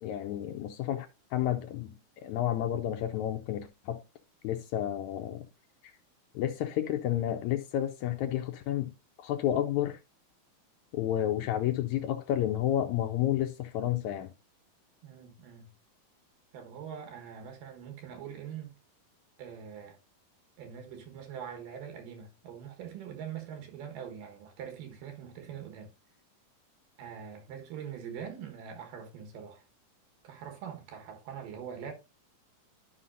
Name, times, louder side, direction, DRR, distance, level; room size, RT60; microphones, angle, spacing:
voice 1, 0.0-2.0 2.2-4.0 4.4-5.4 6.4-8.9 9.2-10.0 10.9-14.3, left 11 dB, 80° left, 1.7 m, -31 dB
voice 2, 15.0-15.7 16.5-18.7 19.4-20.0 20.6-25.9 27.0-29.6 30.2-31.9, right 8 dB, 90° right, 3.1 m, -43 dB
12.0 x 5.5 x 2.6 m
omnidirectional pair, 3.7 m